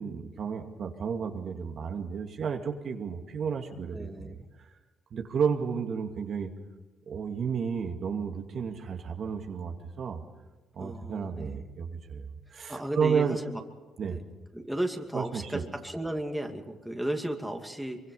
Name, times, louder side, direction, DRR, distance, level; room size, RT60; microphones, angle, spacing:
voice 1, 0.0-4.3 4.6-4.7 5.1-6.5 7.1-10.2 10.8-13.4 14.0-14.2 15.1-15.6, right 6 dB, 60° right, 3 dB, 2.3 m, -32 dB
voice 2, 3.9-4.5 10.8-11.6 12.7-13.6 14.0-14.2 14.5-18.1, right 1 dB, 5° right, 3 dB, 2.5 m, -34 dB
24.0 x 24.0 x 5.6 m, 1.2 s
cardioid pair, 90°, 0 cm